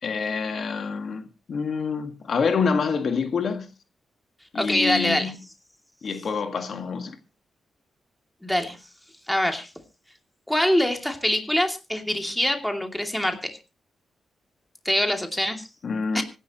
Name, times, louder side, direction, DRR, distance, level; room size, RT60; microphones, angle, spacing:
voice 1, 0.0-3.7 4.5-5.4 6.0-7.2 15.8-16.2, left 5 dB, 60° left, 1.8 m, -27 dB
voice 2, 4.5-5.3 8.4-8.8 9.3-9.7 10.5-13.4 14.8-15.7 16.1-16.2, left 1 dB, 5° left, 2.6 m, -24 dB
24.5 x 11.0 x 3.0 m
cardioid pair, 105°, 0 cm